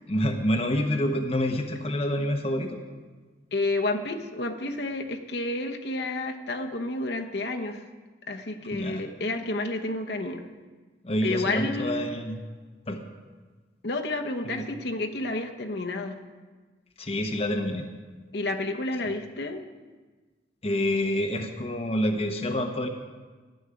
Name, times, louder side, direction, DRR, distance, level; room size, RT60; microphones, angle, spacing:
voice 1, 0.1-2.8 8.7-9.0 11.0-12.4 12.9-13.0 14.4-14.6 17.0-17.9 20.6-22.9, left 1 dB, 35° left, 5 dB, 0.9 m, -27 dB
voice 2, 3.5-7.8 8.3-10.4 11.2-12.2 13.8-16.2 18.3-19.6, left 2 dB, 60° left, 4 dB, 1.0 m, -30 dB
13.5 x 6.4 x 9.5 m, 1.4 s
head